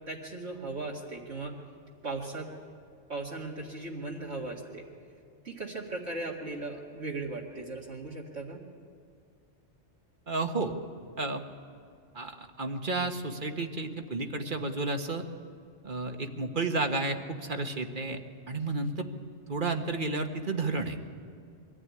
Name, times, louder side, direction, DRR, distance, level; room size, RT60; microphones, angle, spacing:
voice 1, 0.1-1.5 2.0-2.5 3.1-4.8 5.4-8.6, right 2 dB, 70° right, -4 dB, 2.3 m, -37 dB
voice 2, 10.3-10.7 11.2-11.4 12.1-15.2 15.8-18.2 18.5-19.1 19.5-21.0, right 3 dB, 45° right, 5 dB, 1.5 m, -31 dB
23.0 x 15.0 x 9.6 m, 2.4 s
omnidirectional pair, 1.2 m